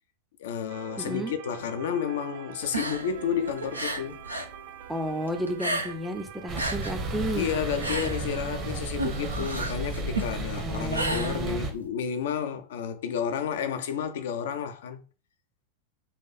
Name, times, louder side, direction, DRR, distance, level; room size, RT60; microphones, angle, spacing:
voice 1, 0.4-4.3 7.4-15.0, left 8 dB, 60° left, 0.5 m, -31 dB
sound 1, 0.7-8.8, right 10 dB, 50° right, 0.4 m, -44 dB
voice 2, 1.0-1.3 4.9-7.5 10.6-11.6, equal, ahead, 0.6 m, -32 dB
sound 2, 2.6-4.5 4.8-6.2 6.4-11.9, right 2 dB, 85° right, 0.7 m, -33 dB
sound 3, 6.5-11.7, right 2 dB, 35° right, 0.9 m, -33 dB
4.1 x 2.5 x 4.1 m
figure-of-eight pair, 90°, 0 cm